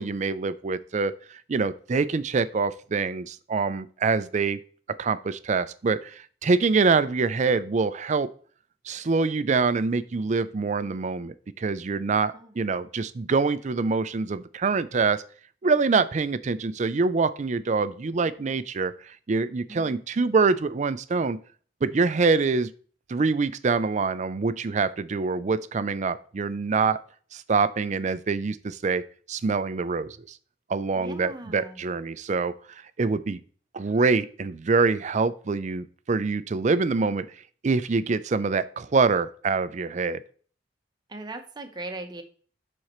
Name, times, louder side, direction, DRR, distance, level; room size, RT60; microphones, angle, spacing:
voice 1, 0.0-4.6 5.0-8.3 8.9-15.2 15.6-21.4 21.8-22.7 23.1-27.0 27.3-29.0 29.3-30.4 30.7-32.5 33.0-33.4 33.7-37.3 37.6-40.2, right 4 dB, 40° right, 14 dB, 0.4 m, -25 dB
voice 2, 19.7-20.0 30.9-31.8 41.1-42.2, right 2 dB, 25° right, 5 dB, 0.9 m, -39 dB
11.5 x 4.2 x 3.1 m, 0.43 s
head